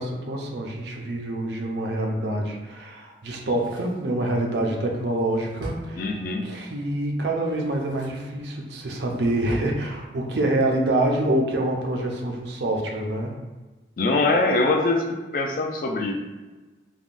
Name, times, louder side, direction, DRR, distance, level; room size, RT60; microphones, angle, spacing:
voice 1, 0.0-6.0 6.4-13.3, right 1 dB, 70° right, 0 dB, 0.5 m, -26 dB
Drawer open or close, 3.3-6.6 7.4-8.4 8.7-9.8 10.1-10.2, equal, 85° right, 0.9 m, -42 dB
voice 2, 6.0-6.5 14.0-15.0 15.3-16.1, left 2 dB, 50° left, 2 dB, 0.3 m, -22 dB
3.4 x 2.2 x 2.5 m, 1.2 s
head